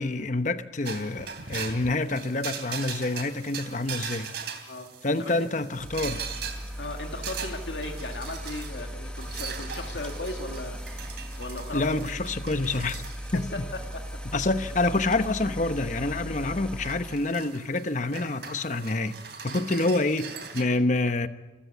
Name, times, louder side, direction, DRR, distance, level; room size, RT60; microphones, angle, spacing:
voice 1, 0.0-4.3 5.0-6.3 11.7-13.7 14.3-21.3, left 2 dB, 45° left, 1.0 m, -27 dB
sound 1, 0.8-20.6, right 7 dB, 70° right, 2.9 m, -41 dB
sound 2, 5.7-17.3, equal, 5° left, 1.1 m, -38 dB
voice 2, 6.8-10.8 11.4-12.1 13.3-13.6, left 2 dB, 90° left, 2.1 m, -37 dB
26.5 x 14.5 x 8.3 m
head